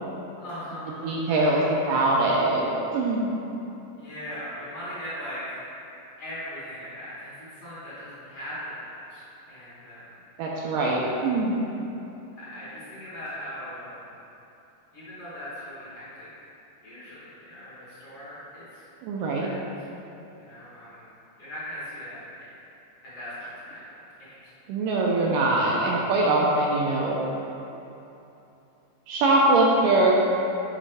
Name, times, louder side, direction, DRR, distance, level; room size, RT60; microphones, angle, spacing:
voice 1, 0.4-1.8 3.9-5.6 6.2-10.1 12.4-14.1 14.9-16.3 16.8-18.8 19.4-20.0 20.4-21.1 21.4-22.2 23.0-24.5 24.8-25.0, equal, 50° left, -11 dB, 1.9 m, -39 dB
voice 2, 1.0-3.4 10.4-11.6 19.0-19.5 24.7-27.2 29.1-30.1, right 2 dB, 80° right, -3 dB, 2.0 m, -22 dB
7.4 x 5.0 x 3.4 m, 2.9 s
omnidirectional pair, 4.2 m